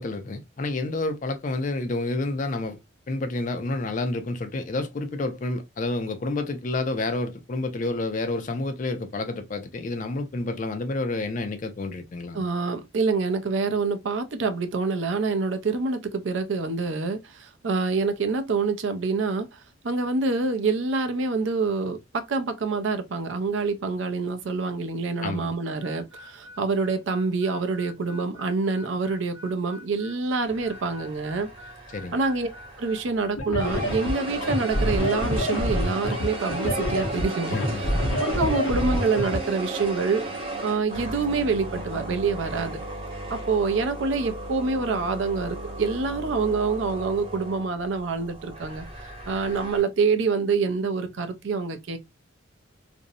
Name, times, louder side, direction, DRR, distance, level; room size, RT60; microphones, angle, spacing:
voice 1, 0.0-2.8 3.1-12.4 25.2-25.5 31.9-32.1 37.5-37.8, left 2 dB, 40° left, 0.4 m, -29 dB
voice 2, 12.3-19.6 19.8-31.5 32.1-32.5 32.8-37.9 38.2-40.3 40.6-42.8 43.3-48.9 49.3-52.0, right 4 dB, 65° right, 0.5 m, -26 dB
Harmonica, 25.8-33.4, left 2 dB, 85° right, 0.9 m, -47 dB
sound 1, 30.4-33.2 33.6-49.8, right 2 dB, 25° right, 0.7 m, -35 dB
sound 2, 33.4-39.4, left 1 dB, 85° left, 0.7 m, -27 dB
2.5 x 2.0 x 2.6 m
head